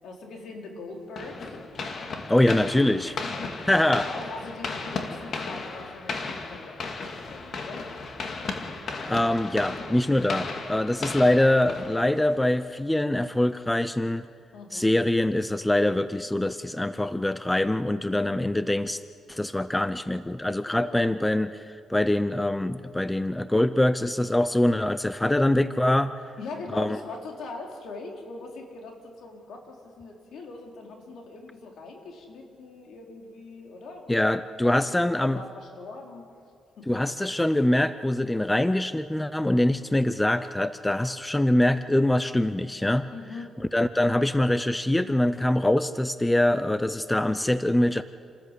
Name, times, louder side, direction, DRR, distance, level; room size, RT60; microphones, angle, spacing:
voice 1, 0.0-1.6 3.0-8.5 14.5-14.9 20.6-21.0 26.4-34.9 35.2-36.3 36.8-36.9 43.1-43.5, left 3 dB, 70° left, 1 dB, 3.9 m, -41 dB
sound 1, 1.2-12.4, left 4 dB, 50° left, 2.2 m, -35 dB
voice 2, 2.3-3.1 3.7-4.1 9.1-14.3 14.7-19.0 19.3-26.1 26.7-27.0 34.1-35.4 36.9-43.1 43.7-48.0, left 1 dB, 10° left, 13 dB, 0.6 m, -24 dB
28.5 x 13.5 x 8.3 m, 2.3 s
cardioid pair, 110°, 0 cm